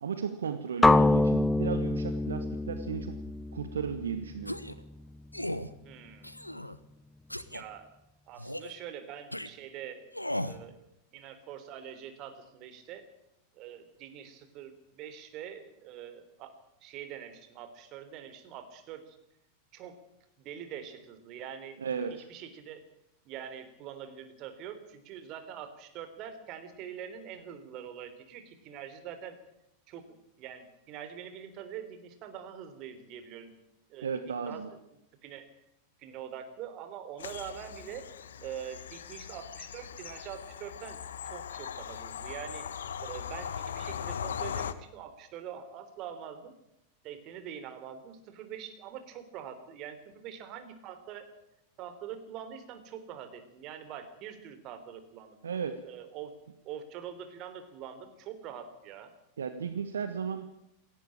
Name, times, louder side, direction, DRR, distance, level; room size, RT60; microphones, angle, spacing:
voice 1, 0.0-3.2 3.5-4.6 21.8-22.3 34.0-34.7 55.4-55.8 59.4-60.5, right 6 dB, 70° right, 10 dB, 1.4 m, -35 dB
sound 1, 0.8-4.8, left 2 dB, 10° left, 0.7 m, -26 dB
sound 2, 4.5-4.8 5.3-5.7 6.2-6.8 7.3-7.6 8.4-8.8 9.3-9.5 10.1-10.6, left 1 dB, 90° left, 1.0 m, -36 dB
voice 2, 5.8-6.3 7.5-7.9 8.3-10.1 10.4-10.8 11.1-13.1 13.6-16.5 16.8-19.2 19.7-20.0 20.4-22.8 23.3-29.4 29.9-33.5 33.9-34.1 34.5-34.6 35.2-35.5 36.0-38.0 38.4-42.7 43.0-46.5 47.0-51.3 51.8-55.4 55.8-56.3 56.6-59.1, right 9 dB, 40° right, 9 dB, 3.5 m, -44 dB
Bird vocalization bird call bird song / Train, 37.2-44.7, left 8 dB, 65° left, 1.2 m, -39 dB
18.0 x 16.5 x 8.8 m, 0.82 s
figure-of-eight pair, 90°, 0 cm